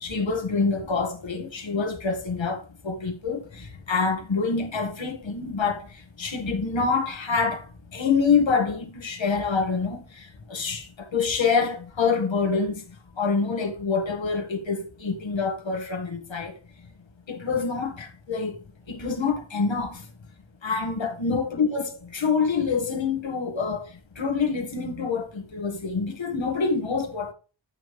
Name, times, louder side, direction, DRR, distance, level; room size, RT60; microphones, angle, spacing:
voice 1, 0.0-5.8 6.2-7.6 7.9-10.0 10.5-10.9 11.1-12.8 13.2-16.5 17.3-18.5 18.9-20.0 20.6-23.8 24.2-27.3, left 5 dB, 65° left, 1.8 m, -26 dB
8.9 x 7.0 x 3.2 m
wide cardioid pair, 75°, 48 cm